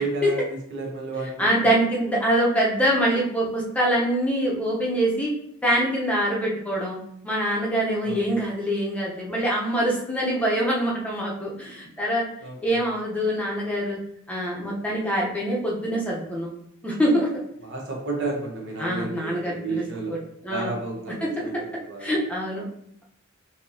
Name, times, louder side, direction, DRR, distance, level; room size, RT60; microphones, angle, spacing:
voice 1, 0.0-1.7 8.0-8.4 12.4-12.8 17.6-20.2 20.5-22.1, right 3 dB, 60° right, -1 dB, 1.0 m, -32 dB
voice 2, 1.4-5.3 5.6-7.0 7.2-12.3 12.6-14.0 14.3-16.5 16.8-17.3 18.8-19.8 20.4-20.7 21.2-21.6 22.0-22.7, right 1 dB, 5° left, -4 dB, 0.8 m, -24 dB
4.4 x 2.8 x 2.7 m, 0.71 s
head